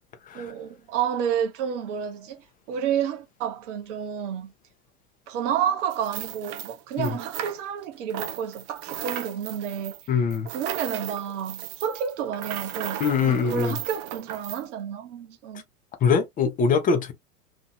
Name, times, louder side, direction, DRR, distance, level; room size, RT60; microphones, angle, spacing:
voice 1, 0.3-4.5 5.3-10.0 10.5-15.6, right 8 dB, 50° right, 1.0 m, -30 dB
sound 1, 5.9-7.8 8.1-14.6, right 11 dB, 35° right, 0.4 m, -36 dB
voice 2, 10.1-10.5 13.0-13.8 16.0-17.1, left 6 dB, 20° left, 0.6 m, -22 dB
2.8 x 2.7 x 2.3 m
figure-of-eight pair, 90°, 45 cm